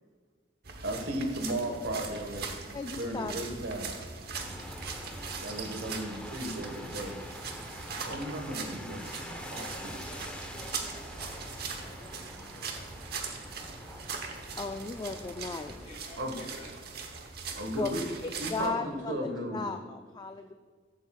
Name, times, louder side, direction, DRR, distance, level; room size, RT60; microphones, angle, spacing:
sound 1, 0.6-18.7, right 5 dB, 60° right, 1.0 m, -41 dB
voice 1, 0.8-2.5 3.0-4.0 5.4-7.2 8.0-9.9 16.2-16.4 17.5-18.0 18.4-19.7, right 1 dB, 85° right, 4 dB, 1.5 m, -35 dB
voice 2, 2.7-3.4 14.6-15.7 17.8-17.9 18.5-20.5, left 4 dB, 20° left, 6 dB, 0.3 m, -36 dB
sound 2, 4.4-15.8, left 1 dB, 5° left, 0.8 m, -45 dB
voice 3, 9.7-11.4 11.8-12.9 15.8-16.7, left 1 dB, 40° left, -3 dB, 2.8 m, -51 dB
14.0 x 8.0 x 2.4 m, 1.5 s
head